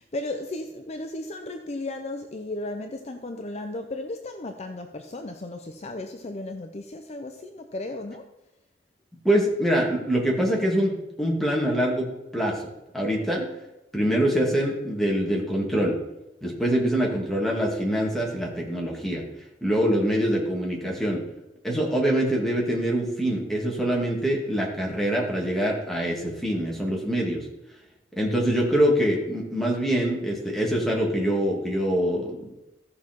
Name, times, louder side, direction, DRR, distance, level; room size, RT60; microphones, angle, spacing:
voice 1, 0.0-8.3, left 2 dB, 40° left, 6 dB, 0.6 m, -35 dB
voice 2, 9.2-12.1 12.3-13.5 13.9-16.0 16.4-19.2 19.6-21.2 21.6-27.5 28.2-32.5, equal, ahead, -2 dB, 2.5 m, -24 dB
15.0 x 5.9 x 4.5 m, 0.95 s
head